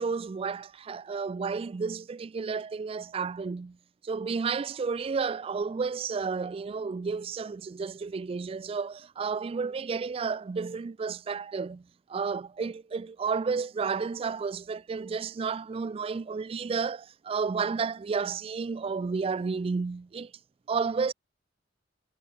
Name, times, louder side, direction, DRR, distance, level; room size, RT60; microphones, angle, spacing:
voice 1, 0.0-3.8 4.0-11.8 12.1-20.3 20.7-21.1, right 5 dB, 30° right, 0.3 m, -31 dB
head